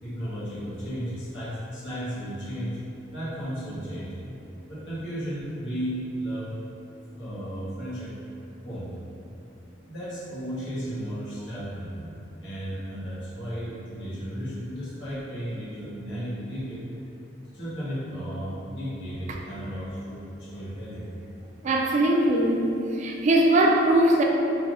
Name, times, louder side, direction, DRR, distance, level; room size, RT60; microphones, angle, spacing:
voice 1, 0.0-2.8 3.1-4.1 4.7-6.5 7.1-8.1 8.6-8.9 9.6-12.1 12.4-16.8 17.5-21.1, equal, 80° left, -10 dB, 1.1 m, -34 dB
voice 2, 21.6-22.6 23.0-24.2, right 1 dB, 40° right, 0 dB, 0.3 m, -20 dB
3.3 x 2.5 x 2.5 m, 2.7 s
head